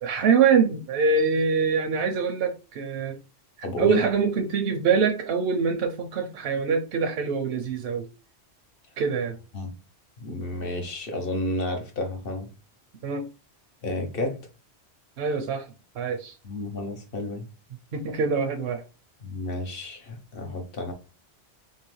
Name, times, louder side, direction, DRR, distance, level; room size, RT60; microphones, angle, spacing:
voice 1, 0.0-3.2 3.6-8.1 9.0-9.4 13.0-13.3 15.2-15.7 15.9-16.3 17.9-18.8, right 5 dB, 70° right, 0.8 m, -24 dB
voice 2, 3.6-4.0 9.5-9.7 10.2-12.5 13.8-14.4 16.4-17.4 19.2-20.9, left 1 dB, 60° left, 1.0 m, -31 dB
3.7 x 2.8 x 3.1 m
omnidirectional pair, 1.1 m